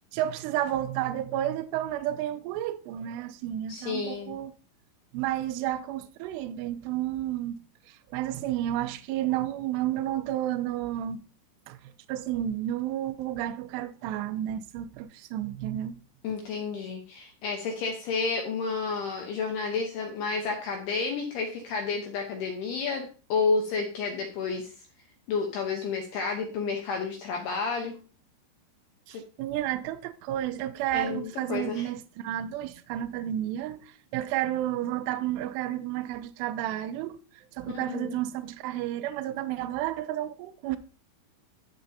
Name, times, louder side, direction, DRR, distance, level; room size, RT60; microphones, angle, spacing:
voice 1, 0.1-4.5 5.1-7.6 7.9-11.2 11.7-16.0 29.1-40.8, right 12 dB, 90° right, 2.4 m, -31 dB
voice 2, 3.7-4.3 16.2-24.7 25.3-28.0 29.1-29.2 30.9-31.9 37.7-38.1, left 4 dB, 75° left, 2.5 m, -31 dB
11.5 x 6.9 x 2.8 m
omnidirectional pair, 5.7 m